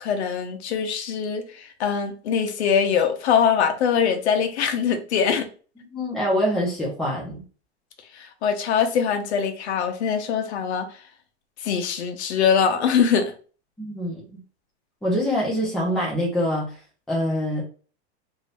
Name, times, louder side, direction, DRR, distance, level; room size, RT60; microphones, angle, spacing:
voice 1, 0.0-5.5 8.2-10.9 11.6-13.3, left 7 dB, 75° left, 0.8 m, -23 dB
voice 2, 5.8-7.4 13.8-14.2 15.0-16.7 17.1-17.6, equal, ahead, 0.7 m, -25 dB
2.7 x 2.6 x 3.3 m
supercardioid pair, 165°, 34 cm